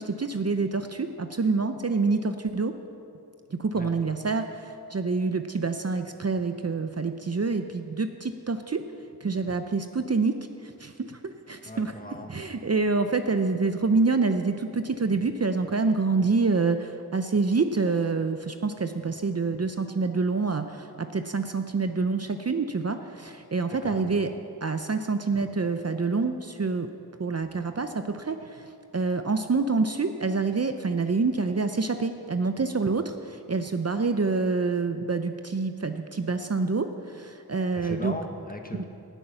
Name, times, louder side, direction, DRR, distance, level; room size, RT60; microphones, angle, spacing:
voice 1, 0.0-2.7 3.5-8.8 9.2-10.4 10.6-11.9 12.3-24.3 24.6-26.9 27.2-38.2 38.7-38.8, right 4 dB, 40° right, 8 dB, 0.7 m, -27 dB
voice 2, 11.6-12.4 23.8-24.1 37.7-38.8, left 1 dB, 20° left, 3 dB, 1.6 m, -38 dB
18.5 x 8.9 x 5.7 m, 2.6 s
wide cardioid pair, 55°, 39 cm